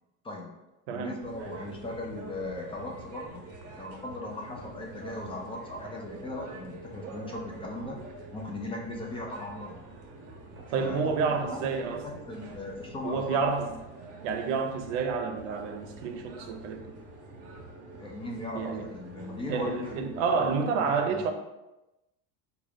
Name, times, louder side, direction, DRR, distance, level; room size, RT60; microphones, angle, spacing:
voice 1, 0.9-3.5 3.8-8.0 8.3-9.8 10.7-11.1 11.5-13.4 18.0-20.0 20.3-21.3, left 2 dB, 15° left, -1 dB, 0.3 m, -38 dB
sound 1, 1.2-20.6, right 2 dB, 40° right, 0.8 m, -46 dB
voice 2, 10.7-12.1 13.0-13.7 14.2-16.9 18.5-18.9 19.5-21.3, right 5 dB, 80° right, 6 dB, 0.6 m, -29 dB
3.7 x 2.3 x 3.4 m, 0.97 s
cardioid pair, 130°, 35 cm